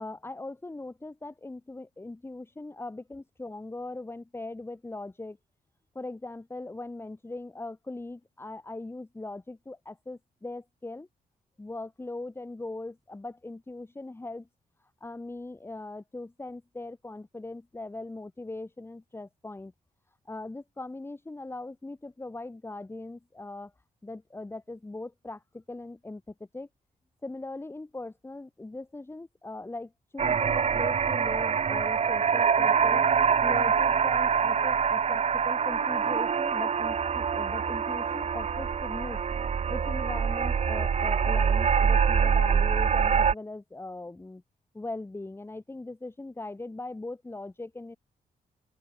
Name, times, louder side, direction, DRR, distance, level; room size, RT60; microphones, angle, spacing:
voice 1, 0.0-5.4 5.9-11.1 11.6-14.5 14.8-19.7 20.2-23.7 24.0-26.7 27.2-33.1 33.4-39.2 39.7-44.4 44.7-48.0, left 2 dB, 15° left, 6.3 m, -40 dB
sound 1, 30.2-43.3, right 6 dB, 45° right, 1.8 m, -25 dB
cardioid pair, 125°, 15 cm